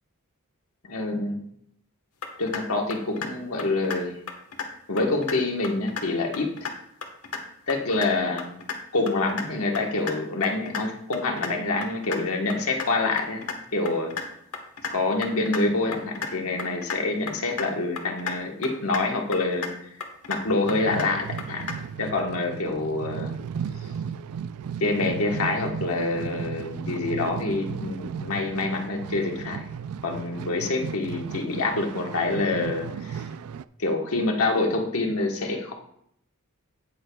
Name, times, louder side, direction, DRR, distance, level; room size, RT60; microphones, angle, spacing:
voice 1, 0.9-1.4 2.4-4.2 4.9-6.7 7.7-8.5 8.9-13.4 13.7-14.2 14.9-19.7 20.3-21.7 22.0-23.3 24.8-29.7 30.0-33.2 33.8-35.7, left 2 dB, 70° left, 2 dB, 1.3 m, -26 dB
sound 1, 2.2-2.6 2.9-3.3 3.6-4.0 4.3-4.7 5.0-5.4 5.6-6.1 6.3-6.7 7.0-7.4 7.7-8.1 8.4-8.8 9.1-9.4 9.7-10.1 10.4-10.8 11.1-11.5 11.8-12.2 12.5-12.9 13.2-13.6 13.9-14.2 14.5-14.9 15.2-15.6 15.9-16.3 16.6-17.0 17.3-17.7 18.0-18.4 18.6-19.0 19.3-19.7 20.0-20.4 20.7-21.1 21.4-21.8, left 5 dB, 90° left, 1.3 m, -32 dB
sound 2, 20.4-33.6, right 7 dB, 80° right, 0.3 m, -35 dB
16.5 x 6.6 x 2.3 m, 0.71 s
head